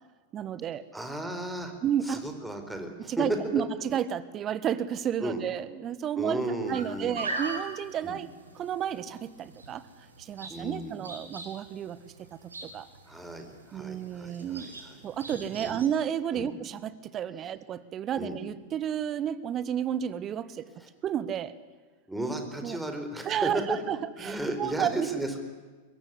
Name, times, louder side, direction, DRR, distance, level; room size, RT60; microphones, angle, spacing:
voice 1, 0.3-0.8 1.8-2.2 3.1-6.4 6.7-8.3 8.5-9.8 10.2-12.1 12.6-12.9 13.7-14.7 15.0-20.7 21.0-21.5 22.6-22.8 23.2-25.1, right 9 dB, 30° right, 16 dB, 1.4 m, -31 dB
voice 2, 0.9-1.7 2.0-3.3 5.2-5.4 6.2-7.2 8.0-8.2 10.5-11.0 13.1-15.0 15.6-15.8 16.3-16.5 18.1-18.4 20.8-20.9 22.1-25.4, right 1 dB, 5° right, 5 dB, 4.6 m, -34 dB
sound 1, 6.7-15.9, right 2 dB, 75° right, 4.9 m, -41 dB
24.0 x 21.5 x 9.9 m, 1.3 s
figure-of-eight pair, 90°, 0 cm